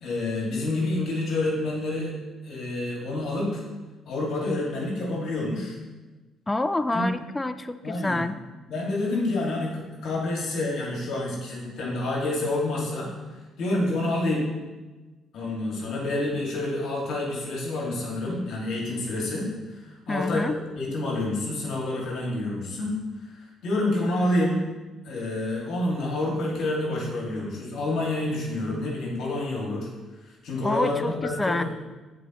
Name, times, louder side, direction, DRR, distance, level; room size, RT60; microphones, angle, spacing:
voice 1, 0.0-2.1 2.4-3.6 4.1-5.8 6.9-7.1 7.8-8.2 8.7-13.1 13.6-14.5 15.3-20.4 20.8-22.9 23.2-24.6 25.0-29.9 30.4-31.6, left 2 dB, 70° left, -3 dB, 2.3 m, -28 dB
voice 2, 6.5-8.4 20.1-20.6 30.6-31.6, left 2 dB, 15° left, 11 dB, 0.5 m, -27 dB
15.0 x 5.0 x 3.1 m, 1.2 s
supercardioid pair, 65°, 0 cm